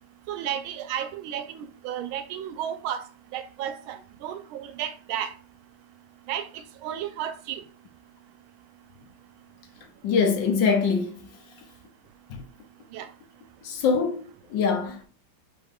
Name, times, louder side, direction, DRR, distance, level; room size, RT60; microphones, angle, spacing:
voice 1, 0.3-3.0 3.3-5.3 6.3-6.5 6.8-7.6 12.9-13.1, right 10 dB, 85° right, 1.4 m, -33 dB
voice 2, 10.0-11.2 12.3-12.4 13.6-15.1, left 5 dB, 70° left, 1.4 m, -24 dB
3.9 x 3.7 x 3.6 m
omnidirectional pair, 2.2 m